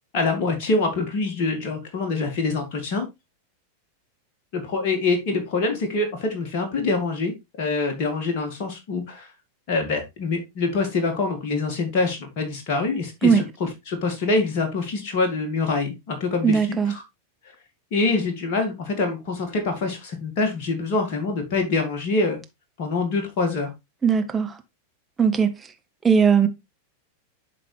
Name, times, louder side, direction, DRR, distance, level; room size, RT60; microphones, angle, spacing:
voice 1, 0.1-3.1 4.5-9.3 9.7-17.0 17.9-22.4 22.8-23.7, left 3 dB, 45° left, 1.9 m, -25 dB
voice 2, 16.4-16.9 24.0-24.6 25.2-25.5 26.0-26.5, right 6 dB, 15° right, 0.9 m, -18 dB
11.0 x 4.0 x 3.1 m
figure-of-eight pair, 90°, 0 cm